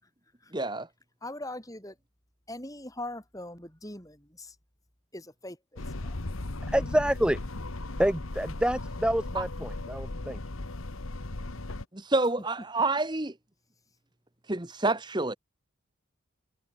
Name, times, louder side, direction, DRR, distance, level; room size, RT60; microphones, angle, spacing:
voice 1, 0.5-0.9 9.3-9.4 11.9-13.3 14.5-15.4, right 2 dB, 20° right, 1.3 m, -28 dB
voice 2, 1.2-2.0 2.5-4.6 5.1-6.2, left 1 dB, 15° left, 6.3 m, -41 dB
sound 1, 5.8-11.8, left 2 dB, 80° left, 1.5 m, -37 dB
voice 3, 6.7-7.4 8.0-10.4, equal, 5° right, 0.6 m, -27 dB
head